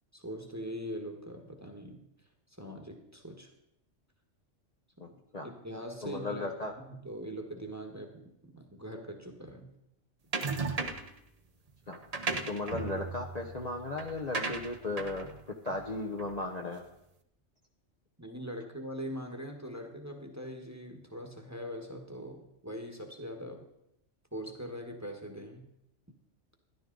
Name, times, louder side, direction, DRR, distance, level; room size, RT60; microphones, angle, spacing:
voice 1, 0.1-2.0 2.5-3.5 5.0-5.2 5.4-9.7 18.2-23.6 24.3-25.7, equal, 15° right, 3 dB, 1.3 m, -42 dB
voice 2, 6.0-6.7 11.9-12.0 12.5-15.3 15.6-16.8, left 2 dB, 35° left, 1 dB, 0.9 m, -36 dB
sound 1, 10.3-11.2 11.9-16.6, right 4 dB, 35° right, 0.8 m, -36 dB
13.0 x 11.0 x 3.9 m, 0.80 s
omnidirectional pair, 1.3 m